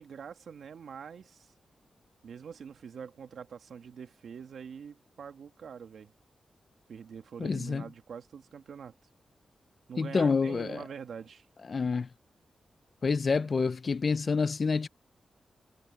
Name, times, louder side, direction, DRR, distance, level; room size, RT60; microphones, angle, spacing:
voice 1, 0.0-1.5 2.2-6.1 6.9-8.9 9.9-11.5, right 7 dB, 85° right, 1.6 m, -44 dB
voice 2, 7.4-7.8 10.0-10.8 11.7-12.1 13.0-14.9, left 4 dB, 55° left, 0.6 m, -28 dB
cardioid pair, 70°, 0 cm